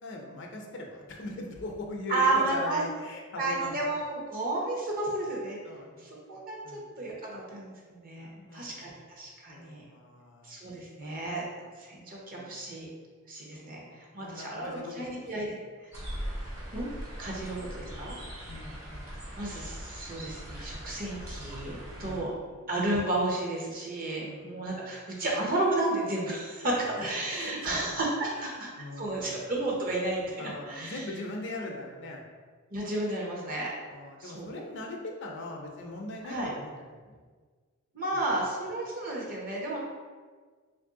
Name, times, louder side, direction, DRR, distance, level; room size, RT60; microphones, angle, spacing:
voice 1, 0.0-3.9 5.6-6.1 6.6-6.9 8.1-8.9 9.5-11.6 12.3-12.7 13.5-15.6 17.3-19.2 22.0-22.7 24.2-24.9 26.7-28.0 28.3-29.3 30.4-32.2 33.9-37.2 38.1-38.3, left 2 dB, 60° left, 1 dB, 0.5 m, -42 dB
voice 2, 2.1-2.8 3.4-5.6 6.0-8.9 9.2-9.8 10.4-11.4 11.8-12.9 13.3-13.8 14.1-15.6 16.7-16.9 17.2-18.2 19.4-22.3 22.7-28.7 29.0-31.0 32.7-33.7 34.2-34.6 36.2-36.5 37.9-39.8, right 2 dB, 45° right, -3 dB, 0.8 m, -32 dB
sound 1, 15.9-22.2, equal, 75° right, 1.2 m, -40 dB
3.2 x 2.6 x 3.6 m, 1.5 s
head